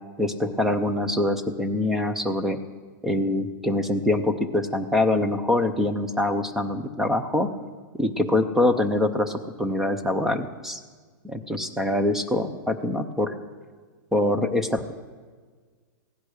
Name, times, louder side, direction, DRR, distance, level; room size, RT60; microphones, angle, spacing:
voice 1, 0.2-2.6 3.0-7.5 7.9-10.8 11.2-13.3 14.1-14.9, left 1 dB, 5° right, 8 dB, 0.5 m, -24 dB
15.5 x 10.0 x 6.4 m, 1.6 s
supercardioid pair, 170°, 11 cm